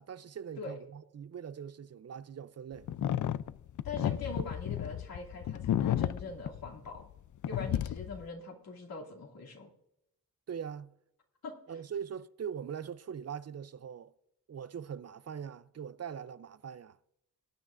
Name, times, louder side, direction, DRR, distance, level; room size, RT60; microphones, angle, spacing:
voice 1, 0.0-2.9 10.5-10.9 11.7-14.1 14.5-17.0, right 7 dB, 45° right, 0.5 m, -42 dB
sound 1, 2.9-7.2 7.4-8.2, left 11 dB, 60° left, 0.5 m, -32 dB
voice 2, 3.8-7.0 7.5-9.7 11.4-11.8, left 3 dB, 85° left, 2.7 m, -42 dB
20.5 x 9.5 x 2.5 m
cardioid pair, 75°, 35 cm